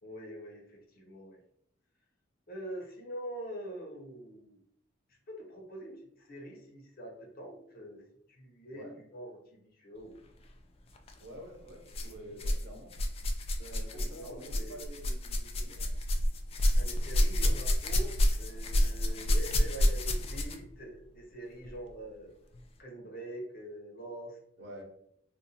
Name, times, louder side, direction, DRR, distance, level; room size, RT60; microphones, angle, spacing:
voice 1, 0.0-1.4 2.5-4.6 5.1-8.0 8.3-10.2 11.9-12.3 13.6-14.8 16.8-22.3 22.8-24.8, right 1 dB, 50° left, 0 dB, 0.9 m, -45 dB
voice 2, 8.7-9.0 11.2-12.9 13.7-15.9 24.6-24.8, right 1 dB, 55° right, 1 dB, 0.8 m, -48 dB
sound 1, 11.0-11.1 11.9-12.6 12.9-20.7 21.6-21.7 22.5-22.6, equal, 30° left, 0.3 m, -29 dB
2.6 x 2.4 x 4.0 m, 0.70 s
head